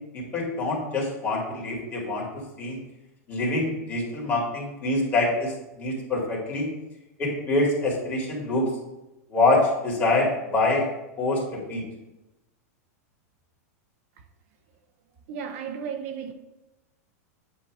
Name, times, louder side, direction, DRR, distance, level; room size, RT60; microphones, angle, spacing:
voice 1, 0.1-2.3 2.6-2.8 3.3-6.7 7.2-8.7 9.3-10.9 11.2-11.8, left 2 dB, 20° left, 2.1 m, -25 dB
voice 2, 15.3-16.3, right 7 dB, 60° right, 0.7 m, -34 dB
8.3 x 2.8 x 6.0 m
supercardioid pair, 145°, 9 cm